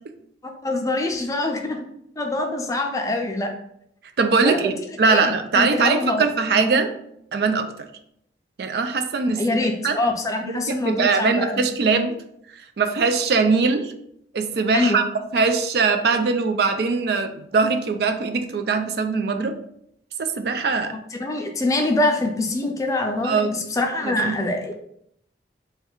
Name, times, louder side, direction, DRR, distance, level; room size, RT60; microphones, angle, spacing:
voice 1, 0.4-1.8 2.2-3.5 4.4-4.7 5.1-6.2 6.6-6.8 9.4-11.6 14.7-15.0 21.1-24.7, left 2 dB, 20° left, 3 dB, 0.4 m, -24 dB
voice 2, 4.2-6.9 7.3-7.7 8.6-9.4 9.8-10.0 10.7-12.2 12.8-13.9 14.3-15.0 15.3-19.6 20.2-20.9 23.2-23.6 24.0-24.4, right 4 dB, 60° right, 7 dB, 0.4 m, -21 dB
3.2 x 2.3 x 4.4 m, 0.73 s
head